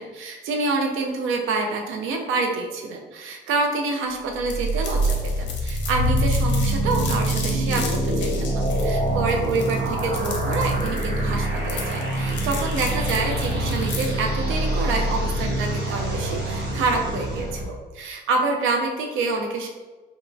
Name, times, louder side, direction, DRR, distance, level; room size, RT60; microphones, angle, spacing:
voice 1, 0.0-19.7, right 3 dB, 90° right, 2 dB, 0.5 m, -27 dB
sound 1, 4.4-17.6, right 1 dB, 55° right, 1.2 m, -25 dB
sound 2, 4.5-14.2, left 5 dB, 65° left, 0.7 m, -36 dB
3.4 x 2.9 x 2.6 m, 1.2 s
cardioid pair, 90°, 20 cm